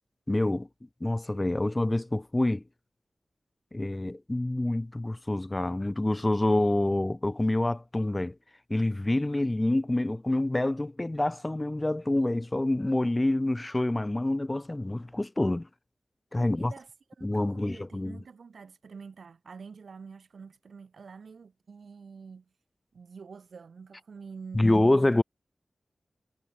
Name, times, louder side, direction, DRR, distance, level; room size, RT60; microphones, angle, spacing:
voice 1, 0.3-0.7 1.0-2.6 3.7-8.4 8.7-15.7 16.3-16.7 17.2-18.2 24.5-25.2, left 1 dB, 20° left, 0.5 m, -27 dB
voice 2, 16.4-16.9 17.2-22.5 22.9-25.2, right 5 dB, 80° right, 4.3 m, -47 dB
wide cardioid pair, 95°, 0 cm